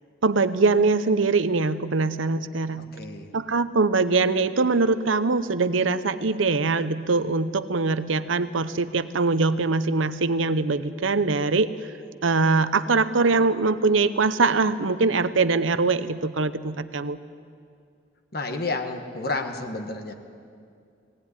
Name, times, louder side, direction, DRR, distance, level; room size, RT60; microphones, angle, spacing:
voice 1, 0.2-2.9 3.3-11.9 12.2-17.2, right 3 dB, 85° right, 12 dB, 0.8 m, -22 dB
voice 2, 2.7-3.3 18.3-20.1, left 3 dB, 50° left, 5 dB, 1.4 m, -31 dB
19.0 x 18.5 x 9.8 m, 2.3 s
head